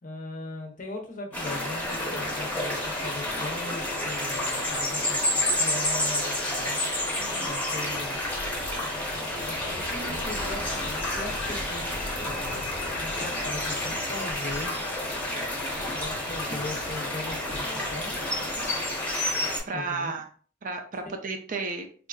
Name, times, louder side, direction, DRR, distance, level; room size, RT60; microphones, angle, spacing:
voice 1, 0.0-6.8 7.4-8.2 9.5-11.9 12.2-14.8 15.9-18.1 19.7-20.1 21.0-21.2, left 2 dB, 40° left, 2 dB, 0.7 m, -39 dB
sound 1, 1.3-19.6, left 1 dB, 10° left, 0.8 m, -30 dB
voice 2, 7.2-7.6 19.6-20.3 20.6-22.1, right 3 dB, 40° right, 5 dB, 0.4 m, -33 dB
Vehicle, 7.8-18.7, left 1 dB, 85° left, 0.6 m, -43 dB
3.7 x 2.5 x 2.3 m, 0.43 s
head